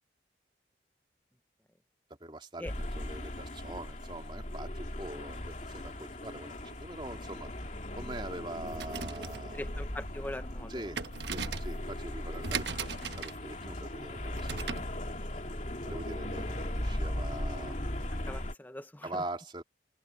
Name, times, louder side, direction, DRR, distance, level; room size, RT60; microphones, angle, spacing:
voice 1, 2.2-7.5 8.0-9.7 10.7-11.0 11.3-14.8 15.8-17.9 19.0-19.6, right 1 dB, 25° right, 2.7 m, -43 dB
sound 1, 2.7-18.5, left 1 dB, 40° left, 2.7 m, -38 dB
sound 2, 8.6-15.0, right 5 dB, 75° right, 1.1 m, -40 dB
voice 2, 9.5-10.7 18.3-19.2, left 1 dB, 10° left, 0.8 m, -41 dB
open air
head